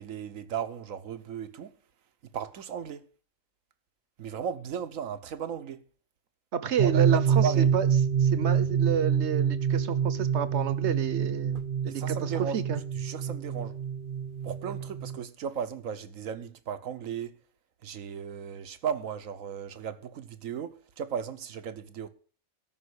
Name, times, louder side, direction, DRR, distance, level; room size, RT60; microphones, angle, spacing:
voice 1, 0.0-1.7 2.3-3.0 4.2-5.8 6.8-7.7 11.9-12.6 12.9-13.8 14.4-17.4 17.8-22.1, right 7 dB, 80° right, 1.3 m, -35 dB
voice 2, 6.5-7.9 8.2-11.6 11.8-12.8, right 8 dB, 60° right, 1.1 m, -30 dB
sound 1, 6.8-15.2, right 7 dB, 45° right, 0.9 m, -27 dB
13.0 x 5.7 x 8.1 m
omnidirectional pair, 1.4 m